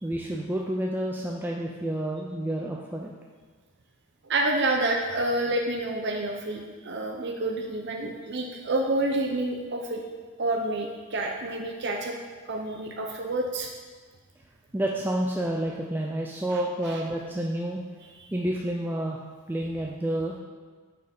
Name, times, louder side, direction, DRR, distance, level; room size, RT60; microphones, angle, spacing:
voice 1, 0.0-3.1 14.7-17.8 18.3-19.2 19.5-20.4, right 1 dB, 10° right, -2 dB, 0.4 m, -29 dB
voice 2, 4.2-10.0 10.4-12.2 12.5-13.7 16.9-17.0, right 2 dB, 50° right, 1 dB, 0.7 m, -28 dB
6.5 x 6.4 x 5.3 m, 1.5 s
head